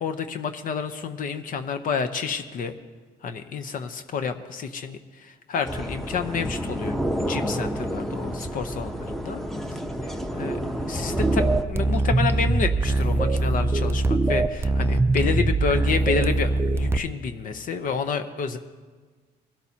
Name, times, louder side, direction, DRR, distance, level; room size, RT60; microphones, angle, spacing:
voice 1, 0.0-2.7 3.2-5.0 5.5-7.0 7.2-9.4 10.3-10.6 10.9-16.5 16.8-18.6, left 5 dB, 55° left, 8 dB, 0.8 m, -29 dB
sound 1, 5.6-11.6, equal, ahead, 0.8 m, -30 dB
sound 2, 11.2-17.0, right 2 dB, 15° right, 0.4 m, -22 dB
21.0 x 13.0 x 2.8 m, 1.4 s
cardioid pair, 110°, 17 cm